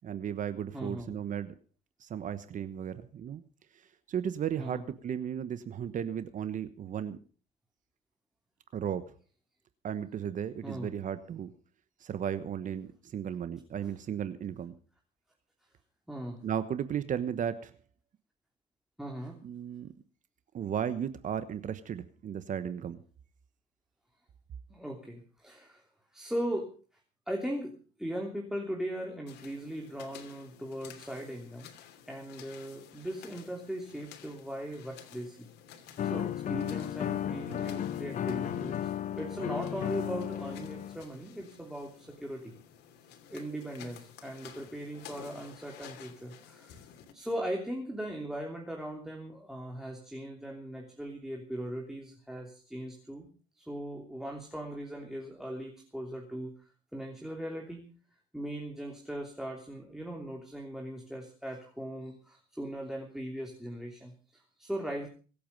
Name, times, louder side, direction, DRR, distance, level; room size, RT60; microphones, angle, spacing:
voice 1, 0.0-1.5 2.0-3.4 3.7-7.2 8.7-9.1 9.8-11.5 12.0-14.7 16.4-17.7 19.4-19.9 20.5-23.0, right 9 dB, 50° right, 12 dB, 1.2 m, -35 dB
voice 2, 0.7-1.1 4.6-4.8 10.6-10.9 16.1-16.4 19.0-19.4 24.7-25.8 26.1-26.7 27.3-31.7 32.1-35.5 36.0-38.9 39.2-42.5 43.3-46.8 47.1-53.3 53.5-56.5 56.9-57.9 58.3-65.1, right 1 dB, 5° right, 1 dB, 3.0 m, -39 dB
sound 1, 29.3-47.1, left 9 dB, 80° left, 3.0 m, -53 dB
sound 2, 36.0-41.0, left 10 dB, 50° left, 0.9 m, -34 dB
24.5 x 8.6 x 5.4 m, 0.40 s
cardioid pair, 110°, 17 cm